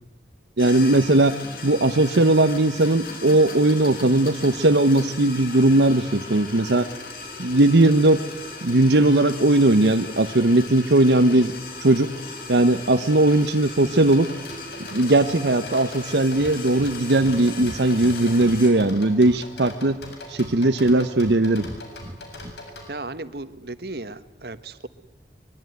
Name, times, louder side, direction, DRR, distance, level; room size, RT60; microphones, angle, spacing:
sound 1, 0.6-18.7, left 3 dB, 55° left, 6.3 m, -38 dB
voice 1, 0.6-1.4 1.6-6.9 7.4-8.2 8.6-11.5 11.8-12.1 12.5-14.3 14.9-20.0 20.3-21.6, right 2 dB, 85° right, 8 dB, 1.0 m, -18 dB
sound 2, 14.1-22.9, left 2 dB, 80° left, 7.1 m, -41 dB
Breathing, 16.4-16.5 16.8-17.0 17.2-17.4 17.6-19.0 19.2-20.2 20.4-21.4 21.6-22.5, equal, 25° right, 1.2 m, -39 dB
voice 2, 22.9-24.9, right 2 dB, 65° right, 12 dB, 1.4 m, -35 dB
24.5 x 22.5 x 9.5 m, 1.1 s
head